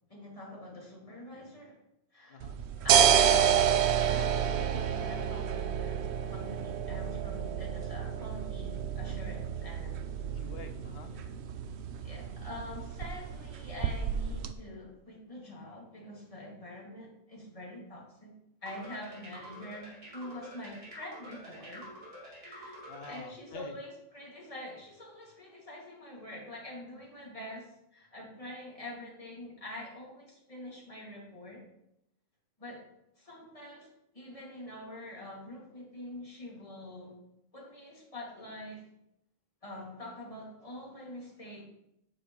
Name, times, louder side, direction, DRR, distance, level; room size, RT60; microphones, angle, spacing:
voice 1, 0.1-1.8 2.1-2.4 2.8-3.5 3.9-10.0 11.1-11.3 12.0-18.3 18.6-21.9 22.4-22.8 23.1-31.6 32.6-32.8 33.2-37.2 37.5-38.8 39.6-41.6, left 1 dB, 25° left, -4 dB, 2.3 m, -45 dB
sound 1, 2.4-14.5, right 8 dB, 65° right, 0.8 m, -29 dB
voice 2, 10.0-11.1 22.9-23.7, left 4 dB, 55° left, 6 dB, 0.9 m, -47 dB
sound 2, 18.6-23.3, equal, 50° right, 2.6 m, -48 dB
9.0 x 6.8 x 3.1 m, 0.81 s
omnidirectional pair, 1.3 m